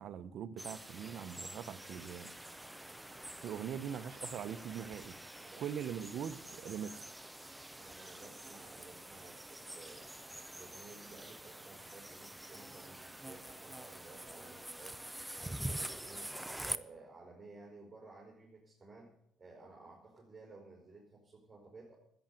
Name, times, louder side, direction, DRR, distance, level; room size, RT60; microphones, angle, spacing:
voice 1, 0.0-2.3 3.4-5.1 5.6-7.1, right 8 dB, 60° right, 12 dB, 0.9 m, -42 dB
sound 1, 0.6-16.8, right 1 dB, 5° right, 0.6 m, -46 dB
voice 2, 5.2-5.7 7.8-10.1 10.5-15.0 15.4-21.9, right 3 dB, 20° right, -2 dB, 4.0 m, -55 dB
13.5 x 8.1 x 9.1 m, 0.70 s
cardioid pair, 115°, 0 cm